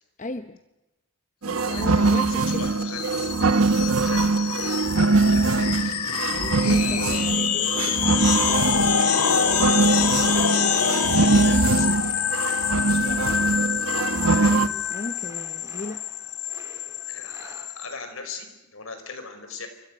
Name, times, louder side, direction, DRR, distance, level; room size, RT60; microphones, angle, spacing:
voice 1, 0.2-0.6 1.4-2.8 6.3-9.1 14.3-16.0, left 2 dB, 35° left, 9 dB, 0.8 m, -36 dB
sound 1, 1.4-14.7, right 3 dB, 75° right, 1.1 m, -22 dB
sound 2, 1.6-17.8, left 7 dB, 90° left, 1.8 m, -26 dB
voice 2, 1.6-3.1 3.7-4.3 4.7-5.8 6.8-6.9 10.0-10.1 10.8-14.5 17.1-19.7, left 4 dB, 65° left, 7 dB, 5.1 m, -41 dB
sound 3, 8.1-17.7, right 2 dB, 15° right, 3.4 m, -50 dB
29.0 x 25.0 x 6.5 m, 0.98 s
head